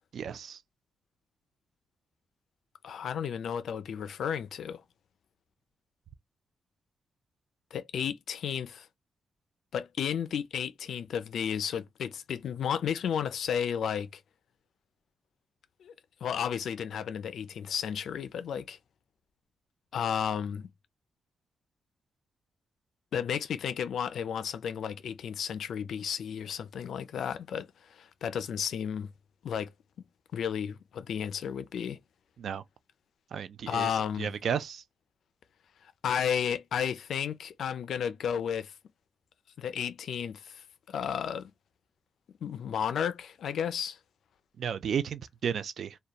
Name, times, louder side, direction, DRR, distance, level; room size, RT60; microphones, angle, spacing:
voice 1, 0.1-0.6 32.4-32.6 33.3-33.9 34.2-34.8 44.6-46.0, right 7 dB, 70° right, 0.3 m, -33 dB
voice 2, 2.8-4.8 7.7-8.9 9.7-14.2 15.8-15.9 16.2-18.8 19.9-20.7 23.1-29.1 29.4-29.7 30.3-32.0 33.7-34.3 36.0-38.7 39.6-40.6 40.9-41.5 42.4-44.0, left 8 dB, 80° left, 0.3 m, -33 dB
2.8 x 2.2 x 2.2 m
cardioid pair, 90°, 0 cm